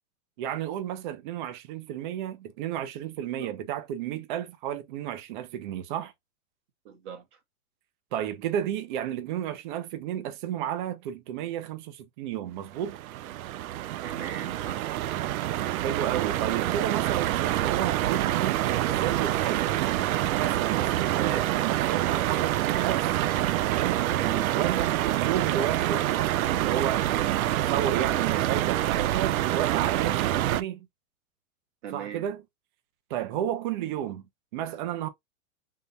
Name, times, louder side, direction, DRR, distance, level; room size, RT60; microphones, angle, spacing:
voice 1, 0.4-6.1 8.1-13.0 15.7-19.8 20.3-23.1 23.6-24.1 24.5-26.1 26.5-30.9 31.9-32.4 33.1-34.2 34.5-35.1, right 10 dB, 35° right, 0.6 m, -32 dB
voice 2, 6.8-7.4 14.0-15.0 21.1-21.5 24.2-24.5 31.8-32.2, right 8 dB, 55° right, 1.7 m, -39 dB
sound 1, 12.7-30.6, right 13 dB, 80° right, 0.5 m, -26 dB
3.7 x 2.3 x 4.0 m
supercardioid pair, 165°, 42 cm